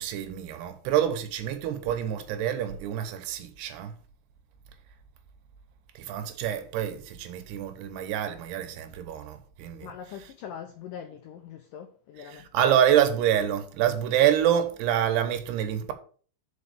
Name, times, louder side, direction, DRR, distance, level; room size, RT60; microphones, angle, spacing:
voice 1, 0.0-3.9 6.0-9.9 12.3-15.9, right 10 dB, 80° right, 3.0 m, -26 dB
voice 2, 9.8-12.8, left 8 dB, 85° left, 1.9 m, -42 dB
5.6 x 5.4 x 6.6 m
omnidirectional pair, 4.7 m